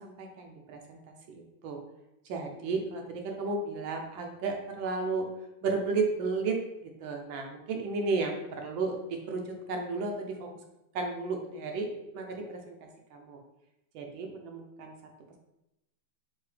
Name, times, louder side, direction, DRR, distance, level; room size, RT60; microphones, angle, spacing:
voice 1, 0.0-1.8 2.3-5.3 5.6-10.5 10.9-11.9 12.1-12.8 13.1-13.4 13.9-14.9, right 3 dB, 75° right, 2 dB, 1.3 m, -33 dB
4.7 x 2.7 x 3.2 m, 0.91 s
omnidirectional pair, 2.2 m